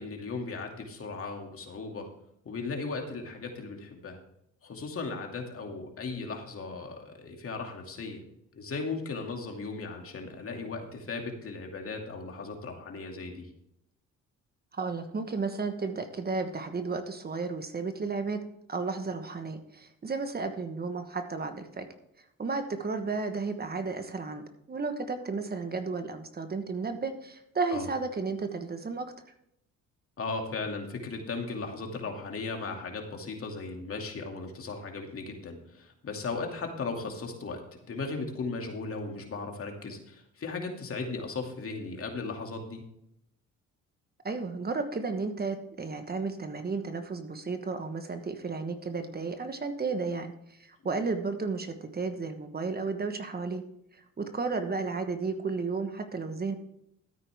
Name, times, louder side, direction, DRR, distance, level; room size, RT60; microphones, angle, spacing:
voice 1, 0.0-2.1 2.4-4.2 4.6-8.2 8.5-13.5 27.7-27.9 30.2-37.6 37.9-42.8, left 4 dB, 45° left, 2 dB, 2.5 m, -37 dB
voice 2, 14.7-18.4 18.7-21.9 22.4-29.1 44.2-50.3 50.6-53.6 54.2-56.5, right 4 dB, 30° right, 7 dB, 1.3 m, -33 dB
13.0 x 9.2 x 3.5 m, 0.76 s
cardioid pair, 90°, 30 cm